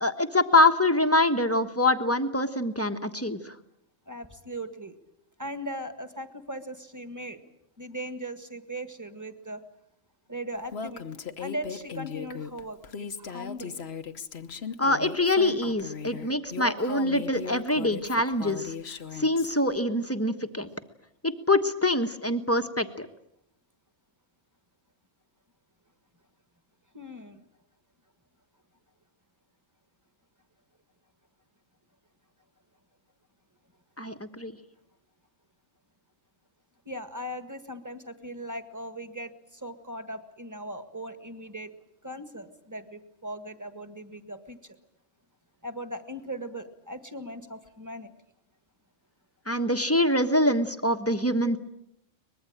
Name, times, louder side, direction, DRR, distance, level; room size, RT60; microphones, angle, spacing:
voice 1, 0.0-3.5 14.8-18.7 19.1-20.7 21.2-23.1 34.0-34.5 49.5-51.6, left 1 dB, 10° left, 8 dB, 1.2 m, -24 dB
voice 2, 4.1-4.9 5.4-7.4 7.8-9.6 10.3-13.8 26.9-27.4 36.9-41.7 42.0-44.6 45.6-48.1, equal, 15° right, 9 dB, 1.8 m, -39 dB
Female speech woman speaking, 10.7-19.5, left 6 dB, 55° left, 1.3 m, -38 dB
23.5 x 21.0 x 8.8 m, 0.79 s
omnidirectional pair, 1.3 m